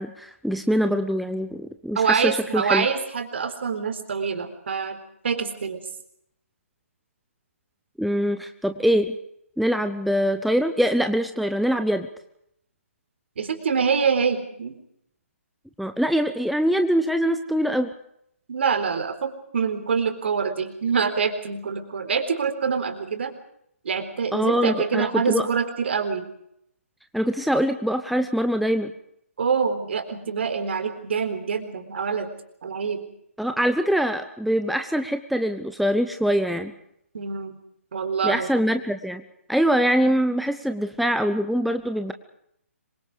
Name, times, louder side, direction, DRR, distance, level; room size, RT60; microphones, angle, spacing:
voice 1, 0.0-2.9 8.0-9.2 9.6-12.1 15.8-17.9 24.3-25.5 27.1-28.9 33.4-36.7 38.2-39.2 39.5-42.1, equal, ahead, 8 dB, 0.9 m, -23 dB
voice 2, 2.0-5.9 13.4-14.7 18.5-23.3 23.8-26.3 29.4-32.3 32.6-33.1 37.1-37.6 37.9-38.5 40.0-40.1, right 6 dB, 50° right, 8 dB, 4.0 m, -25 dB
26.0 x 23.5 x 5.1 m, 0.74 s
figure-of-eight pair, 135°, 8 cm